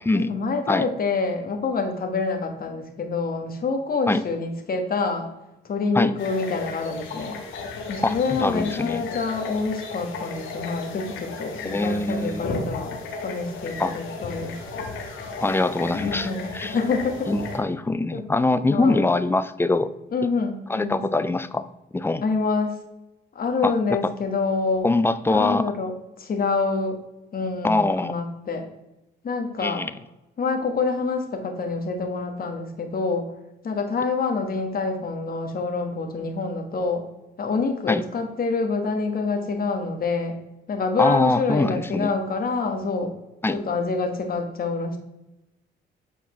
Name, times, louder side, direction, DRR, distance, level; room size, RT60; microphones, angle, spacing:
voice 1, 0.1-5.3 5.6-7.4 7.9-12.9 13.2-14.5 16.0-17.3 18.1-18.2 18.7-19.1 20.1-21.0 22.2-22.8 23.3-24.9 25.3-25.9 26.2-27.0 27.3-28.6 29.2-29.8 30.4-33.3 33.6-37.0 37.4-40.3 40.7-43.1 43.5-45.0, left 4 dB, 50° left, 4 dB, 1.3 m, -26 dB
sound 1, 6.2-17.6, left 3 dB, 80° left, 1.2 m, -35 dB
voice 2, 8.0-9.0 11.6-12.4 13.8-13.9 15.4-16.8 17.3-19.9 20.7-21.7 21.9-22.2 23.6-24.1 24.8-25.7 27.6-28.1 29.6-29.9 37.9-38.0 41.0-42.1 43.4-43.6, left 2 dB, 10° left, 13 dB, 0.4 m, -23 dB
8.2 x 4.3 x 3.1 m, 0.94 s
cardioid pair, 90°, 20 cm